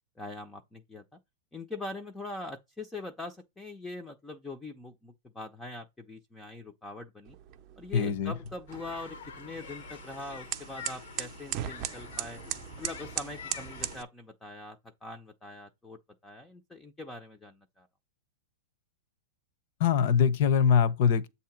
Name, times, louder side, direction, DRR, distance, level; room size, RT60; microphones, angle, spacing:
voice 1, 0.2-1.2 1.5-7.4 7.8-12.4 12.8-17.9, left 2 dB, 10° left, 0.6 m, -42 dB
sound 1, 7.2-14.0, right 13 dB, 30° right, 0.6 m, -39 dB
voice 2, 7.9-8.3 19.8-21.3, left 7 dB, 50° left, 0.8 m, -23 dB
sound 2, 8.7-14.0, left 6 dB, 75° left, 1.0 m, -46 dB
8.2 x 2.8 x 5.9 m
supercardioid pair, 160°, 0 cm